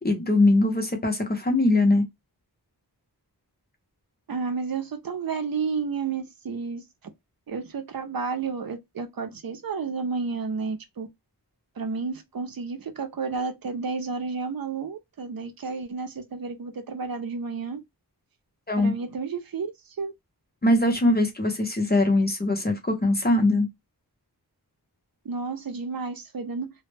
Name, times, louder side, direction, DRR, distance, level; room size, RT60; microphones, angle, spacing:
voice 1, 0.0-2.1 18.7-18.9 20.6-23.7, left 2 dB, 25° left, 0.7 m, -21 dB
voice 2, 4.3-6.8 7.5-11.1 11.8-17.8 18.8-19.7 20.0-20.1 25.2-26.7, right 4 dB, 65° right, 0.5 m, -31 dB
2.1 x 2.0 x 3.1 m
wide cardioid pair, 65°, 39 cm